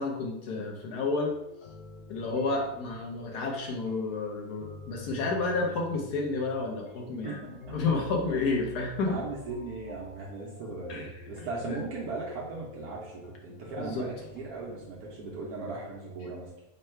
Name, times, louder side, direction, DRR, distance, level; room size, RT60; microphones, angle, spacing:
voice 1, 0.0-1.3 2.1-9.2 10.9-11.2 11.7-11.8 13.8-14.1, left 3 dB, 85° left, 1 dB, 1.3 m, -31 dB
sound 1, 1.2-15.9, left 3 dB, 70° left, 0.5 m, -48 dB
voice 2, 7.2-7.6 9.0-16.5, right 3 dB, 75° right, -4 dB, 1.2 m, -38 dB
3.7 x 2.2 x 4.3 m, 0.88 s
omnidirectional pair, 1.7 m